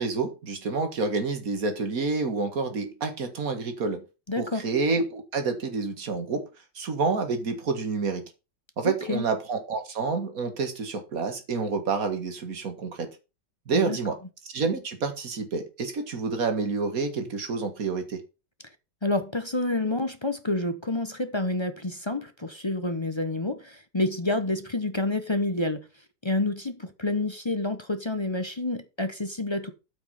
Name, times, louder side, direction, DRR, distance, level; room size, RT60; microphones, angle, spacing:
voice 1, 0.0-4.0 4.4-6.5 6.8-8.3 8.8-13.1 13.7-14.2 14.5-18.2, right 4 dB, 55° right, 2.1 m, -28 dB
voice 2, 4.3-4.7 8.8-9.2 13.7-14.0 19.0-25.8 26.2-29.7, left 2 dB, 25° left, 0.6 m, -28 dB
8.5 x 6.0 x 5.6 m
omnidirectional pair, 1.8 m